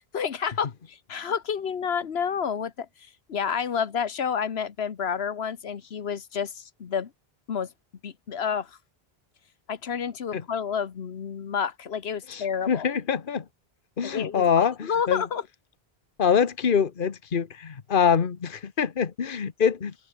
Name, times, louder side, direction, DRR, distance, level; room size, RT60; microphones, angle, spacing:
voice 1, 0.1-7.1 7.5-7.7 8.0-8.8 9.7-12.9 14.0-15.5, left 7 dB, 75° left, 1.3 m, -30 dB
voice 2, 12.3-13.4 14.0-15.2 16.2-19.9, left 7 dB, 55° left, 1.3 m, -24 dB
omnidirectional pair, 1.1 m